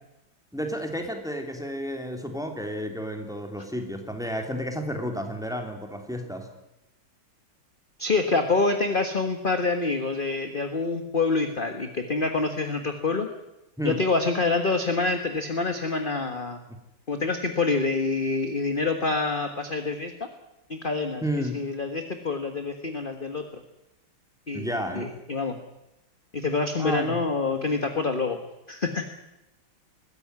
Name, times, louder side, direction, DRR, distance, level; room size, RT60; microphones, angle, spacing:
voice 1, 0.5-6.5 13.8-14.0 21.2-21.6 24.5-25.1 26.8-27.2, equal, ahead, 4 dB, 2.9 m, -31 dB
voice 2, 8.0-13.3 13.8-16.6 17.1-20.3 20.7-21.2 21.5-23.4 24.5-25.6 26.3-28.4 28.7-29.0, left 3 dB, 30° left, 6 dB, 1.5 m, -26 dB
21.0 x 16.0 x 9.5 m, 0.92 s
omnidirectional pair, 2.2 m